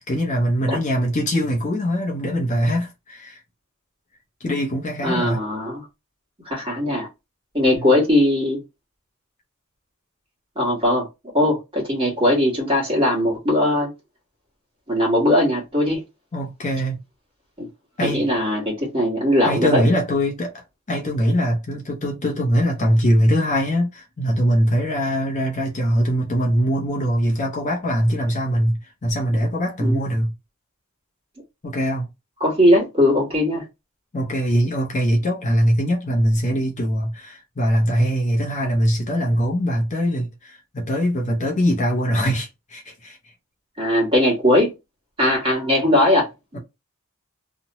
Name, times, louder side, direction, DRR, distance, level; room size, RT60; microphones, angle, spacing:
voice 1, 0.0-3.4 4.4-5.4 16.3-17.0 18.0-18.3 19.4-30.3 31.6-32.1 34.1-43.2 46.5-46.6, equal, 35° left, 0.6 m, -22 dB
voice 2, 5.0-5.9 6.4-7.1 7.5-8.6 10.5-11.1 11.3-13.9 14.9-16.0 17.6-17.7 18.0-19.8 29.8-30.1 32.4-33.6 43.8-44.7 45.2-46.3 46.5-46.6, left 1 dB, 25° right, 1.4 m, -19 dB
2.9 x 2.1 x 2.8 m
head